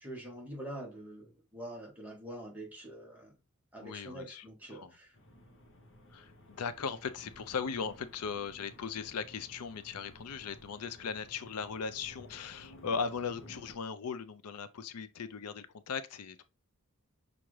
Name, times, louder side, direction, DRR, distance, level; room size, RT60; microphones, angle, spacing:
voice 1, 0.0-3.3 3.7-5.1, right 1 dB, 5° right, 1.4 m, -45 dB
voice 2, 3.8-4.5 4.7-4.9 6.1-6.3 6.6-16.4, left 6 dB, 90° left, 0.5 m, -38 dB
sound 1, 5.1-13.8, left 1 dB, 60° left, 0.9 m, -55 dB
5.9 x 2.5 x 3.1 m
head